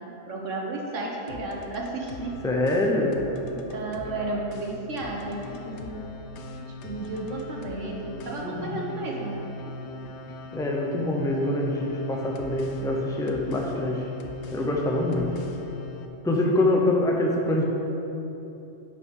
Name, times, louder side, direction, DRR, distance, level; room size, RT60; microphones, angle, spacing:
voice 1, 0.0-2.4 3.5-6.1 6.5-9.4, right 2 dB, 75° right, -1 dB, 1.6 m, -33 dB
sound 1, 1.3-16.1, left 3 dB, 70° left, 0.9 m, -41 dB
voice 2, 2.4-3.2 8.4-8.8 10.5-14.0 14.5-15.3 16.2-17.6, left 1 dB, 5° left, 0 dB, 0.7 m, -25 dB
10.5 x 6.0 x 4.8 m, 3.0 s
omnidirectional pair, 1.3 m